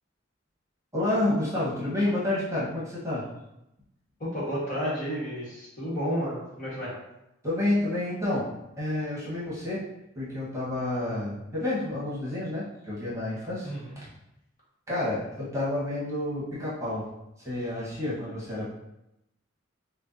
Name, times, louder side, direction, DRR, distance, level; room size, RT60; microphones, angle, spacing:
voice 1, 0.9-3.3 7.4-8.5 8.8-9.8 10.1-14.1 14.9-17.1 17.4-18.7, left 1 dB, 15° right, -8 dB, 1.2 m, -29 dB
voice 2, 4.2-6.9 13.6-14.0, equal, 40° left, -7 dB, 1.5 m, -31 dB
6.4 x 2.3 x 2.7 m, 0.88 s
head